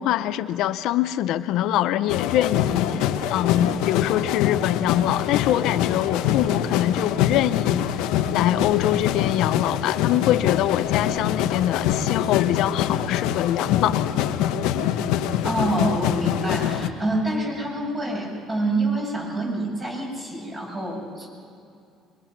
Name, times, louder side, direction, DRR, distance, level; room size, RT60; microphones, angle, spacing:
voice 1, 0.0-7.9 8.3-14.1, left 12 dB, 75° left, 11 dB, 0.7 m, -24 dB
sound 1, 2.1-16.9, left 10 dB, 90° left, 1.0 m, -24 dB
voice 2, 15.4-21.3, right 2 dB, 25° right, -1 dB, 7.2 m, -27 dB
24.0 x 23.0 x 6.0 m, 2.5 s
cardioid pair, 120°, 0 cm